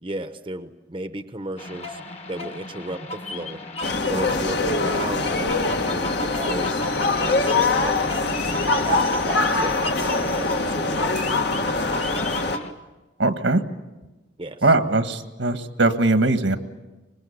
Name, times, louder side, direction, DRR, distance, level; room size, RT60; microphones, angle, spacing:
voice 1, 0.0-2.0 2.3-3.6 4.1-8.1 8.8-11.1 11.5-11.9 14.4-14.7, right 1 dB, 25° right, 9 dB, 0.9 m, -34 dB
sound 1, 1.6-12.7, left 2 dB, 35° left, 1.5 m, -34 dB
sound 2, 3.8-12.6, left 3 dB, 60° left, 1.7 m, -23 dB
voice 2, 13.2-13.6 14.6-16.6, right 2 dB, 80° right, 9 dB, 1.6 m, -20 dB
24.5 x 21.5 x 8.6 m, 1.1 s
head